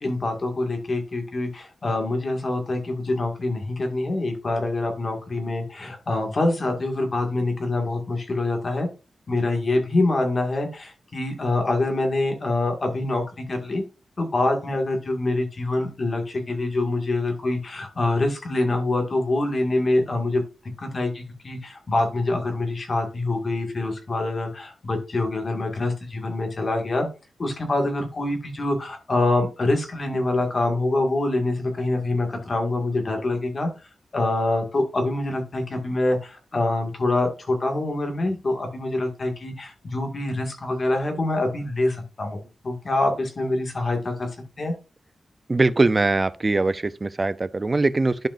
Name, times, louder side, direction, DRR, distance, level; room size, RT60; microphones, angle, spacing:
voice 1, 0.0-8.9 9.3-13.8 14.2-20.4 20.8-27.1 27.4-33.7 34.1-42.4 42.6-44.3 44.6-44.7, left 2 dB, 40° left, 2.0 m, -25 dB
voice 2, 45.5-48.3, right 3 dB, 25° right, 0.5 m, -22 dB
11.5 x 5.1 x 2.6 m
wide cardioid pair, 115°, 0 cm